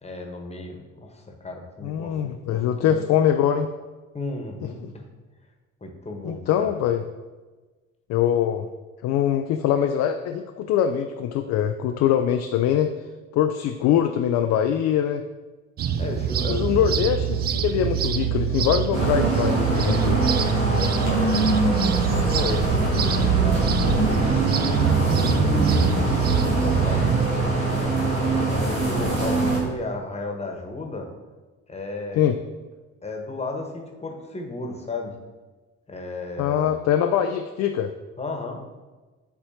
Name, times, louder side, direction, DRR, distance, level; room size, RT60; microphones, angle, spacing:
voice 1, 0.0-3.0 4.1-5.0 5.8-6.7 16.0-16.9 20.9-21.5 22.3-23.7 24.9-27.1 28.4-31.1 31.7-32.2 33.0-35.1 35.9-36.8 38.2-38.6, left 2 dB, 15° left, 2 dB, 1.2 m, -34 dB
voice 2, 1.8-3.7 6.2-7.0 8.1-8.7 9.0-12.9 13.3-15.2 16.5-20.3 32.1-32.4 36.4-37.9, left 10 dB, 45° left, 6 dB, 0.4 m, -23 dB
sound 1, 15.8-27.3, right 9 dB, 25° right, 0.3 m, -24 dB
sound 2, 18.9-29.6, right 1 dB, 85° right, 1.4 m, -23 dB
10.0 x 4.3 x 2.8 m, 1.3 s
figure-of-eight pair, 45°, 39 cm